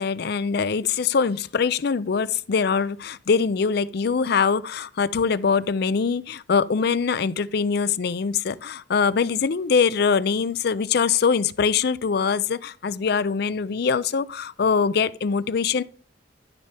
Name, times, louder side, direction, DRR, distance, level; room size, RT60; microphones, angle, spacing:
voice 1, 0.0-15.8, left 5 dB, 55° left, 0.4 m, -23 dB
12.5 x 5.6 x 3.4 m
head